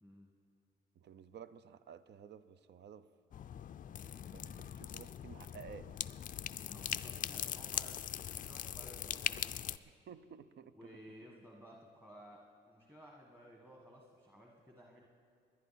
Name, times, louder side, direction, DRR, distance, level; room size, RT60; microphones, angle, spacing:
voice 1, 1.0-3.1 4.3-5.9 10.1-10.7, right 7 dB, 60° right, 13 dB, 0.6 m, -53 dB
sound 1, 3.3-9.8, left 9 dB, 45° left, 0.4 m, -41 dB
voice 2, 6.6-8.0 8.3-9.8 10.7-15.1, equal, 10° right, -1 dB, 1.7 m, -56 dB
20.5 x 10.5 x 4.3 m, 2.5 s
cardioid pair, 90°, 20 cm